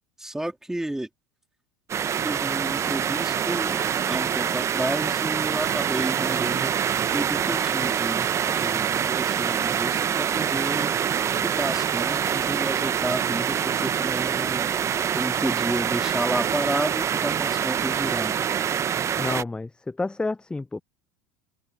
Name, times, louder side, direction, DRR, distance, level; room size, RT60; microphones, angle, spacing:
voice 1, 0.2-1.1 2.2-3.8 4.1-6.7 7.1-11.1 11.4-14.7 15.1-18.4, right 1 dB, 5° right, 3.5 m, -31 dB
sound 1, 1.9-19.4, right 8 dB, 35° right, 1.0 m, -25 dB
voice 2, 19.2-20.8, left 3 dB, 10° left, 0.6 m, -30 dB
hypercardioid pair, 75°, 9 cm